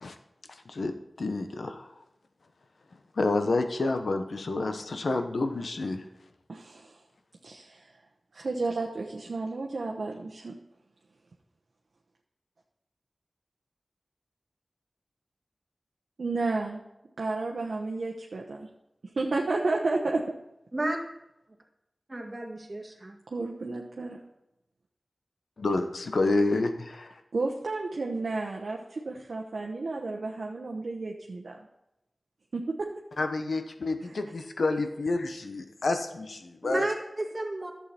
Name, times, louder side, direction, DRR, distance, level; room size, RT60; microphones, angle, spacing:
voice 1, 0.7-1.8 3.2-6.0 25.6-27.1 33.2-36.8, left 2 dB, 85° left, 7 dB, 0.9 m, -29 dB
voice 2, 6.5-6.9 7.4-7.9 8.3-10.5 16.2-16.8 17.2-18.7 19.2-20.2 23.3-24.2 27.3-31.6 32.5-32.6 34.0-34.2, right 3 dB, 85° right, 0 dB, 1.0 m, -32 dB
voice 3, 22.1-23.2 36.6-37.7, right 1 dB, 35° right, -1 dB, 2.1 m, -32 dB
11.5 x 7.6 x 4.3 m, 0.87 s
wide cardioid pair, 50°, 0 cm